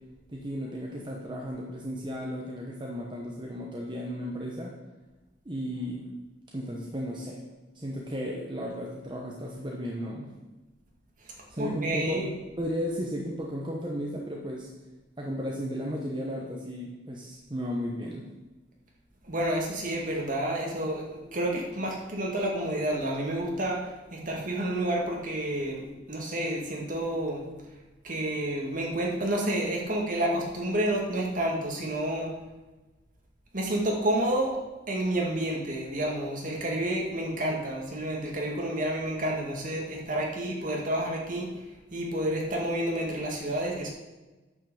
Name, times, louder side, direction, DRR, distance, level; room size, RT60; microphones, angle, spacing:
voice 1, 0.3-4.7 5.4-6.1 6.5-7.4 7.7-10.3 11.5-14.7 15.2-18.3, equal, 25° right, -2 dB, 1.1 m, -34 dB
voice 2, 11.6-12.3 19.2-27.5 28.0-32.3 33.5-34.6 34.9-41.6 41.9-43.9, right 1 dB, 45° right, -1 dB, 2.1 m, -30 dB
9.5 x 5.8 x 7.0 m, 1.1 s
head